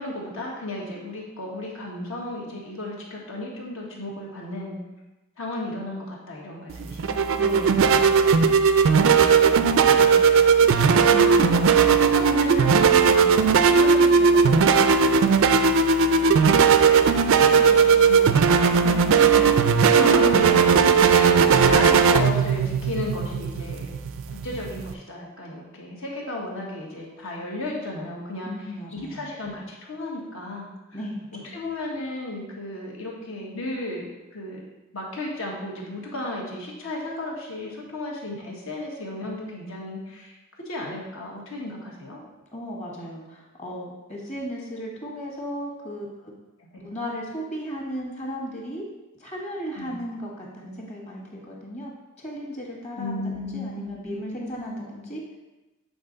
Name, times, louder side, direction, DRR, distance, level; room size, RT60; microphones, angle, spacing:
voice 1, 0.0-4.8 5.4-7.2 9.0-15.6 16.1-16.7 17.3-19.6 19.8-20.8 21.1-23.9 24.4-28.5 28.9-30.7 31.3-34.6 34.9-40.3 40.6-42.2 46.6-46.9 49.8-50.0 53.0-54.6, left 1 dB, 70° left, -2 dB, 1.5 m, -34 dB
sound 1, 6.7-24.9, right 5 dB, 65° right, 0.4 m, -18 dB
voice 2, 7.4-8.4 18.8-19.5 28.4-29.3 30.9-31.2 42.5-46.3 46.8-48.9 49.2-51.9 52.2-55.2, equal, 35° left, -2 dB, 1.6 m, -35 dB
7.8 x 4.0 x 3.9 m, 1.1 s
head